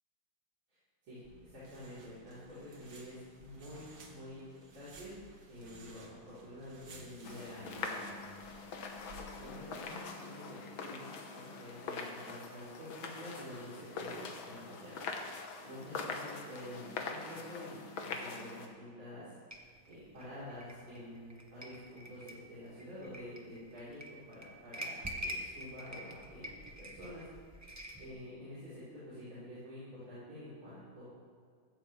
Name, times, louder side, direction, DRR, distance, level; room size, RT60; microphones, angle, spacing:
voice 1, 1.1-4.5 4.7-5.1 5.5-8.4 9.3-15.0 15.6-19.3 19.9-24.0 24.3-27.2 28.0-31.0, left 1 dB, 75° right, -12 dB, 4.8 m, -48 dB
sound 1, 1.2-9.8, right 2 dB, 50° right, 1.9 m, -57 dB
sound 2, 7.2-18.7, left 4 dB, 70° left, 1.9 m, -43 dB
sound 3, 19.5-28.1, equal, 25° right, 0.3 m, -46 dB
15.5 x 14.5 x 3.3 m, 2.1 s
omnidirectional pair, 2.3 m